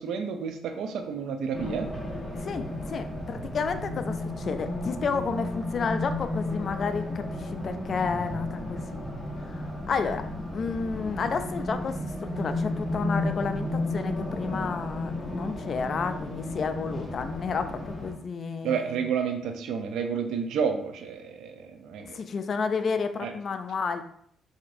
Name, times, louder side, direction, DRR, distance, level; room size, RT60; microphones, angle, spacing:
voice 1, 0.0-1.9 18.6-22.2 23.2-23.3, right 6 dB, 80° right, 6 dB, 0.5 m, -30 dB
Race car auto racing, 1.5-18.1, left 1 dB, 20° left, 1.1 m, -33 dB
voice 2, 2.4-9.0 9.4-10.2 10.5-19.0 22.1-24.0, left 5 dB, 50° left, 9 dB, 0.4 m, -31 dB
4.8 x 2.6 x 2.6 m, 0.67 s
cardioid pair, 90°, 0 cm